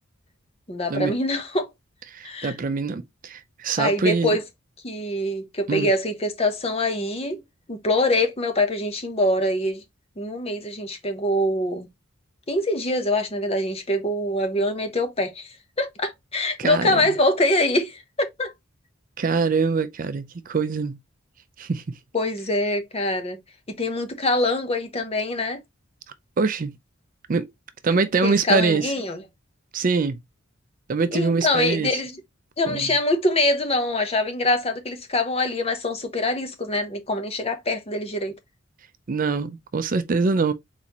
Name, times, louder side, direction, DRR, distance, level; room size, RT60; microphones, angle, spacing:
voice 1, 0.7-1.7 2.2-2.6 3.8-4.4 4.8-7.4 7.7-9.8 10.2-11.9 12.5-18.5 22.1-23.4 23.7-25.6 28.2-29.2 31.1-32.2 32.6-38.4, left 1 dB, 30° left, 0.9 m, -24 dB
voice 2, 2.1-4.3 5.7-5.9 16.6-17.1 19.2-21.0 21.6-21.8 26.4-26.8 27.3-27.5 27.8-28.8 29.7-30.2 30.9-31.9 32.7-32.9 39.1-40.5, right 4 dB, 40° right, 0.4 m, -24 dB
4.1 x 4.1 x 2.9 m
head